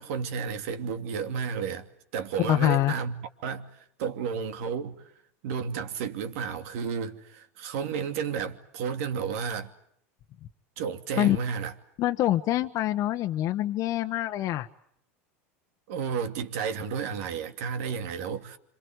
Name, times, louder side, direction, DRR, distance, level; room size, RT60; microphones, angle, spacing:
voice 1, 0.0-1.9 2.1-3.1 3.4-3.7 4.0-5.0 5.4-9.7 10.8-11.7 15.9-18.6, right 6 dB, 75° right, 2.7 m, -32 dB
voice 2, 2.5-2.9 11.2-11.4 12.0-14.7, left 13 dB, 50° left, 1.2 m, -25 dB
27.0 x 26.5 x 8.1 m
supercardioid pair, 110°, 8 cm